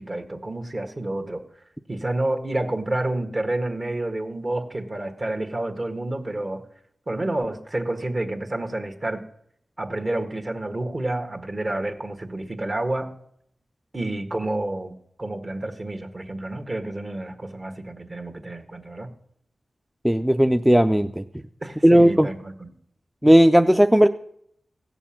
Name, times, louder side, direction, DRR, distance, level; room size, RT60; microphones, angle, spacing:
voice 1, 0.0-1.4 1.9-6.6 7.1-9.2 9.8-13.2 13.9-14.9 15.2-19.1 21.6-22.7, right 1 dB, 40° right, 6 dB, 1.6 m, -29 dB
voice 2, 20.0-21.2 21.8-22.3 23.2-24.1, equal, 10° right, 7 dB, 0.5 m, -16 dB
16.0 x 7.0 x 7.2 m, 0.70 s
cardioid pair, 50°, 0 cm